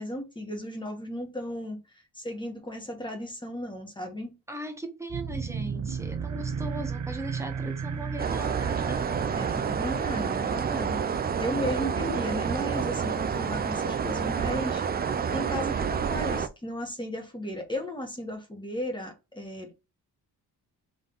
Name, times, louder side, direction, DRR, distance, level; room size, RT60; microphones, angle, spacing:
voice 1, 0.0-4.3 9.4-14.8 15.3-19.8, left 1 dB, 10° left, 1.4 m, -35 dB
voice 2, 4.5-9.0, right 1 dB, 5° right, 1.0 m, -38 dB
sound 1, 5.1-13.2, right 6 dB, 45° right, 0.8 m, -35 dB
sound 2, 8.2-16.5, right 6 dB, 25° right, 0.3 m, -29 dB
3.8 x 3.5 x 3.9 m
cardioid pair, 130°, 40 cm